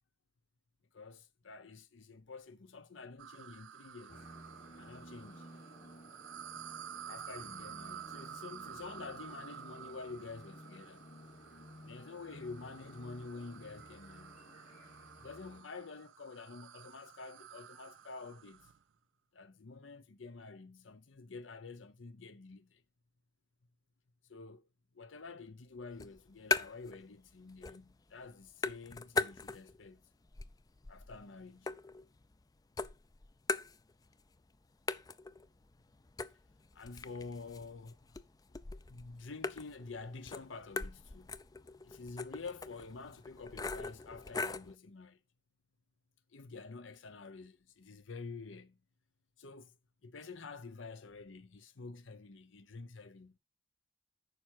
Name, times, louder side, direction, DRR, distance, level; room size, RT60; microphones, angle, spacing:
voice 1, 0.9-4.2 4.8-5.5 7.1-11.1 11.9-14.4 15.2-18.7 19.3-22.8 24.3-24.6 24.9-30.0 30.9-31.7 36.7-38.0 38.9-41.3 41.8-45.2 46.3-48.8 49.4-49.7 50.0-53.4, left 4 dB, 80° left, 0.8 m, -48 dB
sound 1, 3.2-18.8, right 9 dB, 80° right, 0.5 m, -51 dB
sound 2, 4.1-15.6, left 1 dB, 45° left, 2.0 m, -55 dB
sound 3, 25.9-27.0 27.3-28.0 28.2-29.8 30.2-32.4 32.8-34.2 34.5-34.6 34.9-44.7, left 3 dB, 20° left, 0.4 m, -40 dB
9.1 x 5.9 x 4.5 m
head